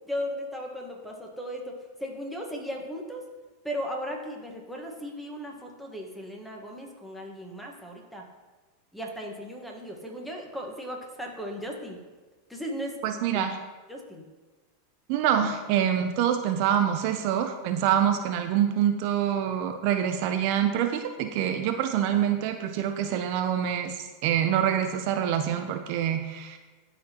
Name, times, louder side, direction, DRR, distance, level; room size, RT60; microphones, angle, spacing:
voice 1, 0.1-1.7 2.0-3.2 3.6-8.2 8.9-12.0 12.5-13.0 13.3-13.4 13.9-14.2, equal, ahead, 0 dB, 1.4 m, -36 dB
voice 2, 13.0-13.6 15.1-26.6, right 9 dB, 55° right, 6 dB, 0.5 m, -26 dB
12.5 x 4.2 x 2.9 m, 1.2 s
hypercardioid pair, 100°, 0 cm